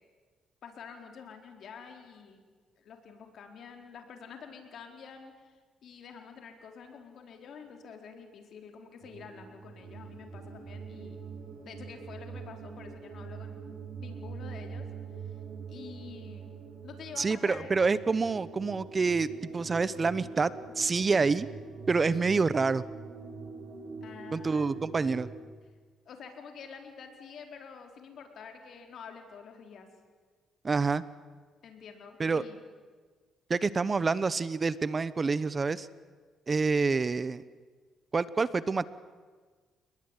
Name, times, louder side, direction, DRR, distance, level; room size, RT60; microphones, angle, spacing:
voice 1, 0.6-2.4 2.8-11.2 11.6-14.9 15.2-15.3 15.7-16.6 16.8-17.7 24.0-24.7 26.1-29.9 31.6-32.6, left 6 dB, 65° left, 4 dB, 4.3 m, -48 dB
sound 1, 9.0-25.4, right 5 dB, 60° right, 6.5 m, -44 dB
voice 2, 17.2-19.3 19.5-21.5 21.9-22.8 24.3-25.3 30.6-31.0 32.2-32.4 33.5-35.9 36.5-37.4 38.1-38.9, right 4 dB, 30° right, 16 dB, 1.0 m, -27 dB
29.0 x 20.5 x 9.9 m, 1.5 s
cardioid pair, 90°, 0 cm